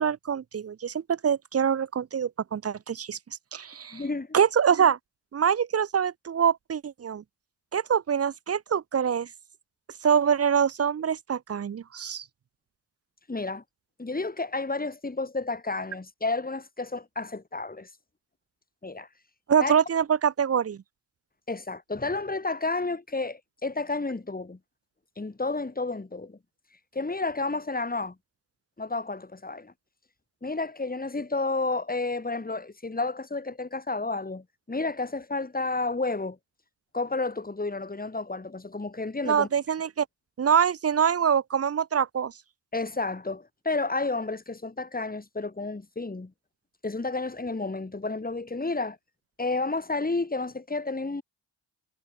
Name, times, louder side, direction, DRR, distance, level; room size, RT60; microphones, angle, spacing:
voice 1, 0.0-3.2 3.5-4.0 4.3-5.0 5.3-7.2 7.7-9.3 10.0-12.2 19.5-20.8 39.3-40.1 40.4-42.3, right 7 dB, 35° right, 0.6 m, -24 dB
voice 2, 3.9-4.4 13.3-13.6 14.0-17.9 18.8-19.1 19.6-19.7 21.5-24.6 25.2-26.4 26.9-28.2 28.8-29.7 30.4-36.4 36.9-39.5 42.7-46.3 46.8-49.0 49.4-51.2, left 3 dB, 20° left, 2.5 m, -31 dB
supercardioid pair, 45°, 43 cm